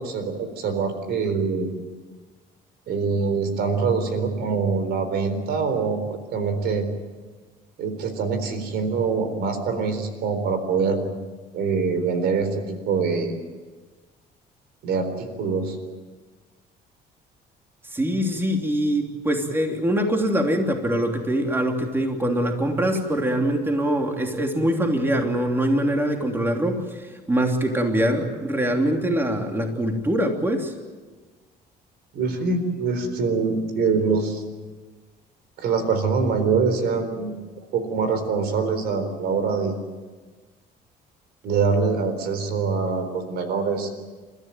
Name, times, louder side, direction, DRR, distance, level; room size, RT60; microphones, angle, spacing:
voice 1, 0.0-1.7 2.9-6.8 7.8-11.0 11.5-13.4 14.8-15.8 32.1-34.4 35.6-37.3 37.7-39.8 41.4-43.9, right 5 dB, 75° right, 9 dB, 4.1 m, -24 dB
voice 2, 17.9-30.7, right 1 dB, 15° right, 2 dB, 3.1 m, -23 dB
30.0 x 14.0 x 9.3 m, 1.3 s
cardioid pair, 110°, 17 cm